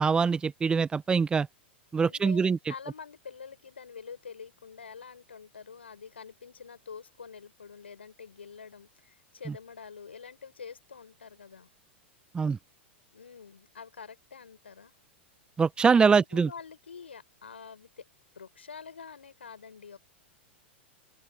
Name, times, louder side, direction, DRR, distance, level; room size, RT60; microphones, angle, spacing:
voice 1, 0.0-1.5 1.9-2.6 9.5-9.6 12.3-12.6 15.6-16.5, right 5 dB, 15° right, 1.2 m, -23 dB
voice 2, 2.0-11.7 13.1-14.9 16.1-18.0 18.3-20.0, left 6 dB, 75° left, 5.6 m, -46 dB
open air
figure-of-eight pair, 100°, 6 cm